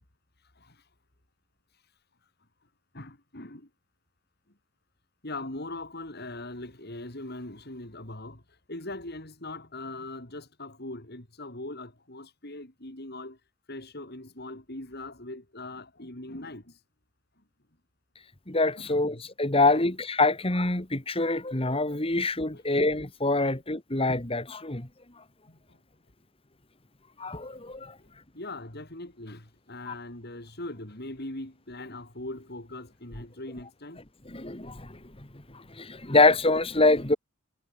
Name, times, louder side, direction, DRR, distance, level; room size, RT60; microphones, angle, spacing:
voice 1, 2.9-3.7 5.2-8.4 8.7-13.4 13.7-16.7 18.8-19.2 19.7-19.9 22.5-22.6 23.4-23.6 25.5-25.8 28.3-34.0, left 2 dB, 45° left, 3.3 m, -41 dB
voice 2, 18.5-24.9 27.2-27.9 29.9-30.0 34.3-35.0 35.8-37.2, left 2 dB, 25° left, 1.9 m, -25 dB
head